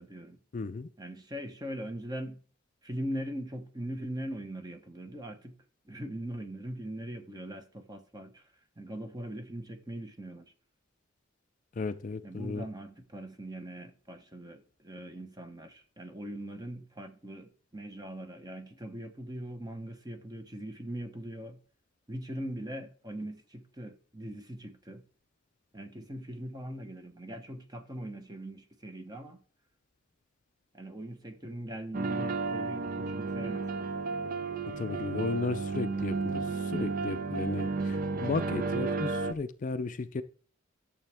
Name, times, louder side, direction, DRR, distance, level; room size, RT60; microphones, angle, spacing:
voice 1, 0.0-0.4 1.0-2.4 2.8-5.5 5.8-8.4 8.8-10.5 12.2-21.6 22.1-25.0 25.7-29.4 30.7-34.0, right 1 dB, 20° right, 1.0 m, -41 dB
voice 2, 0.5-0.9 11.8-12.6 34.8-40.2, left 3 dB, 40° left, 0.4 m, -34 dB
sound 1, 31.9-39.3, right 4 dB, 45° right, 0.6 m, -32 dB
11.5 x 6.9 x 3.5 m
head